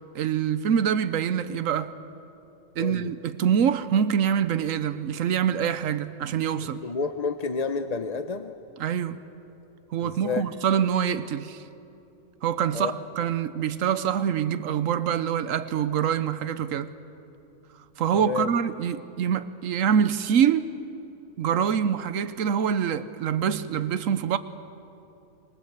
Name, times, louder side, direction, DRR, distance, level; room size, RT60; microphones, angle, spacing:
voice 1, 0.1-1.9 2.8-6.8 8.8-9.2 9.9-11.6 12.4-16.9 18.0-20.7 21.4-24.4, right 8 dB, 90° right, 1.2 m, -25 dB
voice 2, 2.8-3.1 6.8-8.5 10.0-10.4 12.7-12.9 18.1-18.5, left 5 dB, 40° left, 0.7 m, -30 dB
26.5 x 22.5 x 8.0 m
omnidirectional pair, 1.3 m